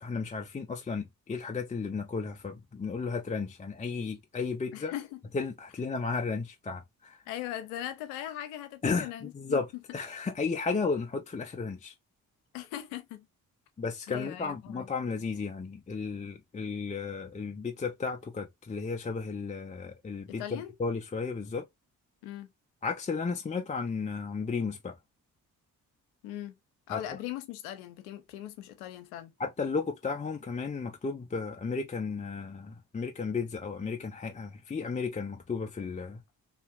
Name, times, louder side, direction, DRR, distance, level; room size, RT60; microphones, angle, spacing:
voice 1, 0.0-4.9 5.3-7.2 8.8-9.7 9.9-11.9 13.8-21.7 22.8-25.0 26.9-27.0 29.4-36.2, left 4 dB, 20° left, 0.4 m, -34 dB
voice 2, 4.7-5.2 7.3-9.6 12.5-13.3 14.1-14.9 20.3-20.7 22.2-22.5 26.2-26.6 26.9-29.3, left 12 dB, 90° left, 0.6 m, -39 dB
2.8 x 2.5 x 2.4 m
hypercardioid pair, 45°, 41 cm